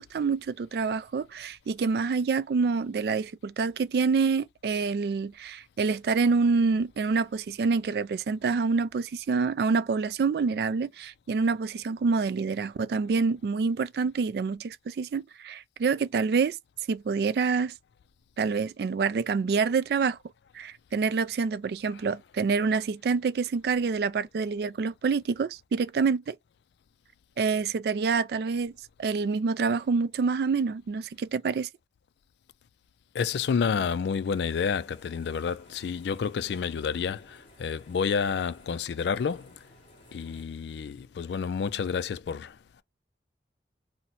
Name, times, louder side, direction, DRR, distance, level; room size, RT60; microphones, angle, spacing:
voice 1, 0.0-16.6 16.9-17.7 18.4-20.2 20.5-26.4 27.4-28.7 29.0-31.7, right 4 dB, 60° right, 0.3 m, -27 dB
voice 2, 33.1-39.5 40.1-42.6, left 6 dB, 75° left, 0.3 m, -29 dB
sound 1, 34.3-40.4, equal, 30° left, 1.2 m, -56 dB
2.8 x 2.1 x 4.0 m
head